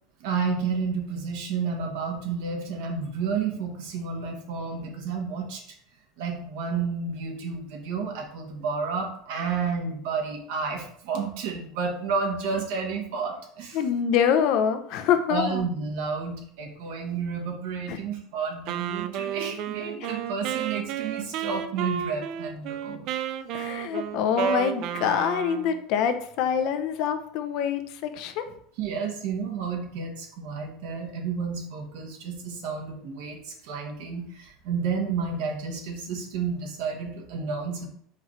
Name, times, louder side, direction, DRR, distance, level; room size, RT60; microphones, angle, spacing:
voice 1, 0.2-5.6 6.2-13.8 15.3-23.1 28.8-37.9, right 5 dB, 75° right, 2 dB, 1.1 m, -31 dB
voice 2, 13.7-15.6 17.9-18.0 20.0-20.1 23.5-28.5, left 8 dB, 65° left, 8 dB, 0.5 m, -25 dB
Wind instrument woodwind instrument, 18.7-25.8, right 9 dB, 60° right, 0.3 m, -32 dB
4.5 x 3.6 x 3.1 m, 0.65 s
supercardioid pair, 105°, 0 cm